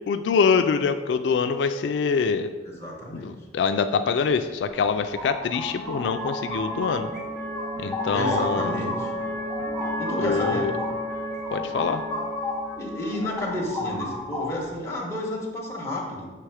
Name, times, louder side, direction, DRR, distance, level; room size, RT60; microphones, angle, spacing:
voice 1, 0.1-2.5 3.1-7.1 7.8-8.8 10.2-10.7 11.5-12.0, left 5 dB, 85° left, 8 dB, 0.3 m, -24 dB
voice 2, 2.6-3.3 8.1-9.1 10.0-10.7 12.8-16.3, left 1 dB, 15° left, -3 dB, 1.1 m, -31 dB
sound 1, 4.3-14.6, equal, 25° right, 1.5 m, -34 dB
sound 2, 4.7-7.2 7.5-12.7 13.1-14.8, left 2 dB, 5° right, 1.1 m, -33 dB
6.8 x 3.4 x 4.8 m, 1.3 s
head